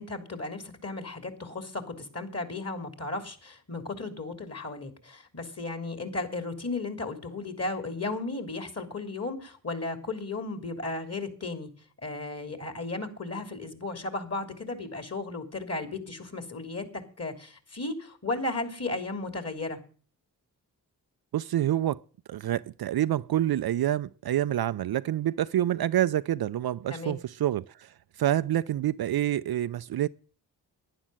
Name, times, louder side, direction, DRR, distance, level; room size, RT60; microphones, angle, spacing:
voice 1, 0.0-11.7 12.0-16.8 17.2-19.8 26.9-27.1, left 2 dB, 35° left, 3.3 m, -35 dB
voice 2, 21.3-22.0 22.3-27.9 28.2-30.1, right 12 dB, 55° right, 0.6 m, -27 dB
11.5 x 10.0 x 7.7 m
supercardioid pair, 40°, 44 cm